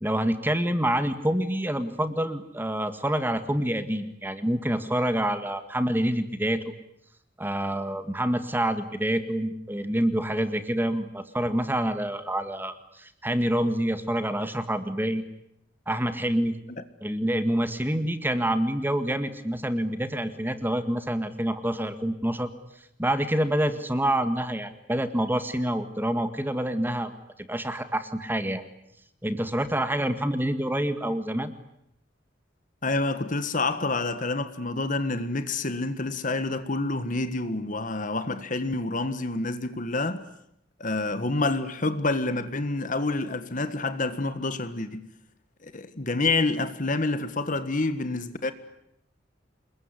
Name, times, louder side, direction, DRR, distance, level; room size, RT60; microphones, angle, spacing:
voice 1, 0.0-6.6 7.4-15.2 15.9-16.6 17.0-22.5 23.0-27.1 27.4-28.6 29.2-31.5, right 1 dB, 10° right, 1.8 m, -27 dB
voice 2, 32.8-40.2 40.8-45.1 45.6-48.5, left 2 dB, 45° left, 1.6 m, -28 dB
28.0 x 22.0 x 9.9 m
head